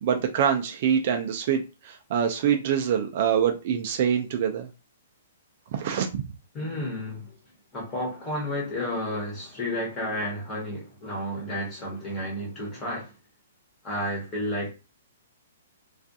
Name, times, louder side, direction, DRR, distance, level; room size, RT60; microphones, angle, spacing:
voice 1, 0.0-4.7 5.7-6.3, right 8 dB, 40° right, 0.3 m, -25 dB
voice 2, 6.5-7.3 7.7-13.1 13.8-14.7, left 1 dB, 15° left, 1.1 m, -31 dB
2.3 x 2.3 x 2.6 m
hypercardioid pair, 165°, 0 cm